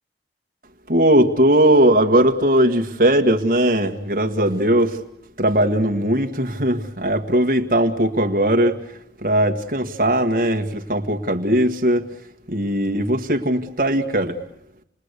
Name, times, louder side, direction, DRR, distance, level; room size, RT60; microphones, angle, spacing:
voice 1, 0.9-5.0 5.4-8.8 9.2-12.1 12.5-14.4, right 1 dB, 55° right, 1.6 m, -19 dB
29.0 x 20.5 x 8.2 m
head